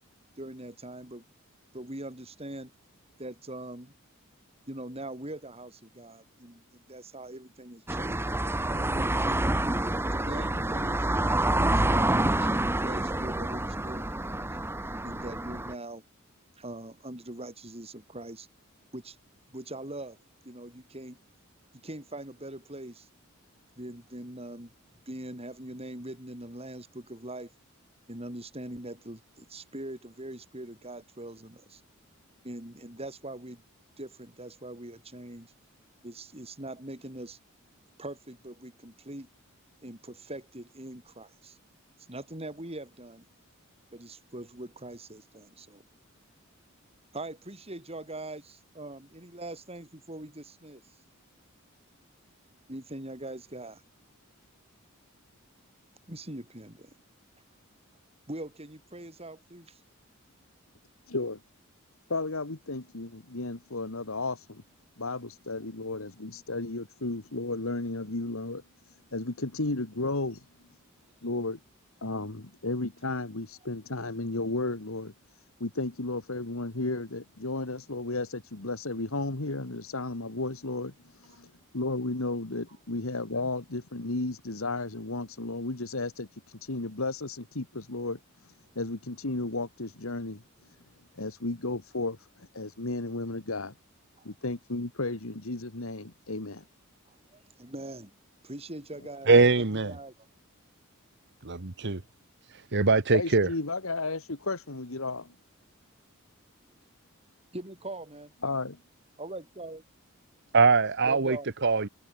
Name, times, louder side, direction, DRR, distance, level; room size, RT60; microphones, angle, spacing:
voice 1, 0.4-1.2 1.7-2.7 3.2-3.9 4.7-8.3 8.7-9.5 10.1-11.1 11.6-14.5 15.0-16.0 16.6-18.5 18.9-19.2 19.5-20.2 20.4-21.2 21.8-23.1 23.8-24.7 25.1-27.5 28.1-31.8 32.4-33.6 34.0-35.5 36.0-37.4 38.0-39.3 39.8-41.6 42.1-43.3 43.9-45.8 47.1-50.8 52.7-53.8 56.1-56.9 58.3-59.8 94.2-94.3 97.1-98.1 98.4-100.1 107.5-108.3 109.2-109.8 111.0-111.5, right 1 dB, 30° right, 6.3 m, -42 dB
sound 1, 7.9-15.7, right 1 dB, 10° right, 1.3 m, -28 dB
voice 2, 61.1-61.4 62.1-64.6 65.0-70.4 71.2-71.6 72.0-75.1 75.6-90.4 91.1-93.7 94.2-96.6 103.1-105.3 108.4-108.7, left 2 dB, 70° left, 1.9 m, -33 dB
voice 3, 99.3-99.9 101.5-102.0 102.5-103.5 110.5-111.9, right 4 dB, 55° right, 1.3 m, -22 dB
head